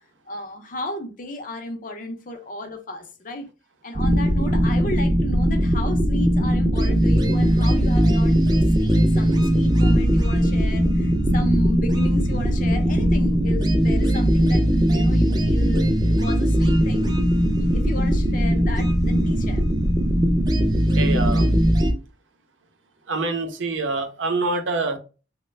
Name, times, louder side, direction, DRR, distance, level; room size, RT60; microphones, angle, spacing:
voice 1, 0.3-3.5 3.8-17.1 17.6-19.6, left 1 dB, 45° left, 0.5 m, -34 dB
sound 1, 3.9-21.9, equal, 20° right, 0.4 m, -19 dB
voice 2, 21.0-21.5 23.1-25.0, right 3 dB, 85° right, 0.6 m, -25 dB
3.1 x 2.1 x 3.1 m
head